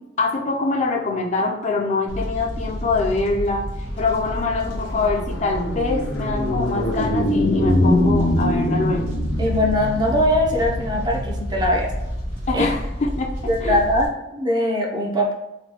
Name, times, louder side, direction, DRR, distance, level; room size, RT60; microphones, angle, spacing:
voice 1, 0.2-3.7 4.0-9.0 12.5-13.3 13.6-13.8, left 3 dB, 40° left, 1 dB, 0.4 m, -24 dB
Fire, 2.1-14.1, equal, 40° right, 1.3 m, -31 dB
sound 1, 4.0-13.6, left 1 dB, 85° left, 0.6 m, -24 dB
voice 2, 9.4-11.9 12.5-12.7 13.5-15.3, left 1 dB, 25° right, -1 dB, 0.5 m, -21 dB
3.1 x 2.2 x 2.8 m, 0.94 s
head